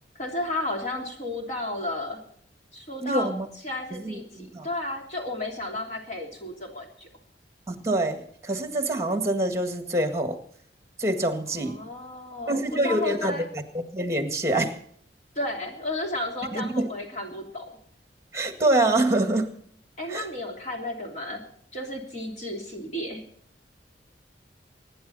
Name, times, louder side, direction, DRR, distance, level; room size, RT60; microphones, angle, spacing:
voice 1, 0.1-2.2 2.7-3.3 3.6-7.1 11.5-13.5 15.3-17.6 20.0-21.4 21.7-23.2, left 1 dB, 40° left, 1 dB, 3.1 m, -33 dB
voice 2, 3.0-3.5 3.9-4.7 7.7-10.4 11.0-11.8 12.5-14.8 16.5-16.9 18.3-19.6 20.1-20.3, right 1 dB, 15° right, 7 dB, 1.9 m, -26 dB
25.5 x 10.5 x 4.2 m, 0.64 s
head